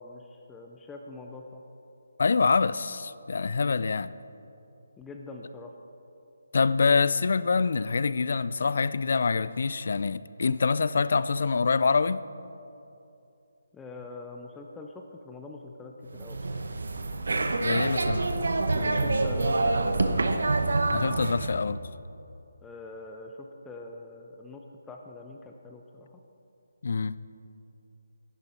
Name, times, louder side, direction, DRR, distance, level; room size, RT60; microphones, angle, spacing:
voice 1, 0.0-1.6 5.0-5.8 13.7-16.6 18.7-20.2 22.6-26.2, left 3 dB, 10° left, 2 dB, 0.5 m, -44 dB
voice 2, 2.2-4.1 6.5-12.2 17.6-18.3 20.9-21.8 26.8-27.2, left 4 dB, 60° left, 16 dB, 0.4 m, -25 dB
sound 1, 16.1-21.5, right 2 dB, 75° right, 0.9 m, -26 dB
14.0 x 11.0 x 4.3 m, 2.8 s
figure-of-eight pair, 160°, 0 cm